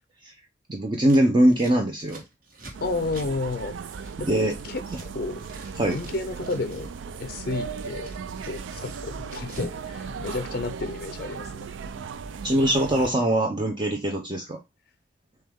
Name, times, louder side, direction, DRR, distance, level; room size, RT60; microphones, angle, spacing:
voice 1, 0.7-2.2 4.2-4.5 5.7-6.0 12.4-14.6, right 1 dB, 25° right, 0.6 m, -22 dB
Scissors, 1.0-5.1 5.3-6.9 7.2-9.8 10.1-11.0, right 1 dB, 50° right, 1.3 m, -45 dB
sound 1, 2.7-13.1, right 5 dB, 75° right, 0.4 m, -37 dB
voice 2, 2.8-5.4 5.8-6.9 7.2-8.1 8.5-11.7, left 3 dB, 50° left, 0.5 m, -32 dB
6.3 x 2.3 x 3.5 m
head